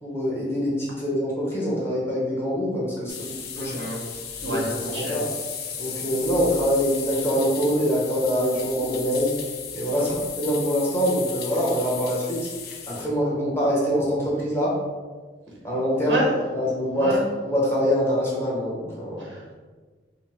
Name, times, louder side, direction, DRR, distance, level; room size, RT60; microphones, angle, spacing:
voice 1, 0.0-3.7 4.4-4.6 4.9-5.3 5.8-9.4 9.7-12.5 12.9-14.7 15.6-16.1 16.5-17.2 17.4-19.2, equal, 15° left, -6 dB, 1.1 m, -24 dB
sound 1, 3.1-13.1, left 7 dB, 55° left, 0.5 m, -35 dB
voice 2, 3.6-4.0 4.4-5.2 9.9-10.1 15.9-16.3 17.0-17.2 19.3-19.5, equal, 85° right, -3 dB, 1.1 m, -29 dB
3.8 x 2.2 x 4.3 m, 1.4 s
head